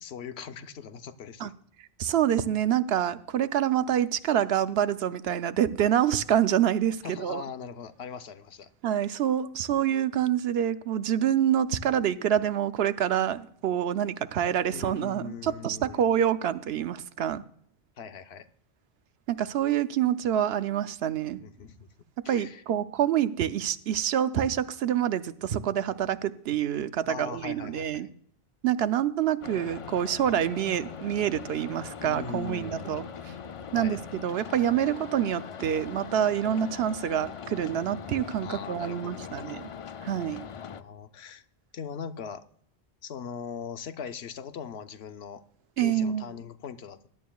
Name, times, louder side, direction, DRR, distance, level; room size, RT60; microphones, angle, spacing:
voice 1, 0.0-1.5 7.0-8.7 14.7-16.1 18.0-18.5 21.4-21.9 22.2-22.6 27.1-28.1 32.0-33.1 33.7-34.0 38.4-39.6 40.8-41.4 41.7-42.4 43.0-45.4 45.8-47.1, left 6 dB, 75° left, 1.0 m, -40 dB
voice 2, 2.0-7.4 8.8-17.4 19.3-21.4 22.3-28.1 28.6-33.0 33.7-39.7 40.0-40.4 45.8-46.3, right 10 dB, 75° right, 0.8 m, -27 dB
sound 1, 29.4-40.8, left 7 dB, 55° left, 0.3 m, -41 dB
20.0 x 11.0 x 2.3 m
omnidirectional pair, 1.1 m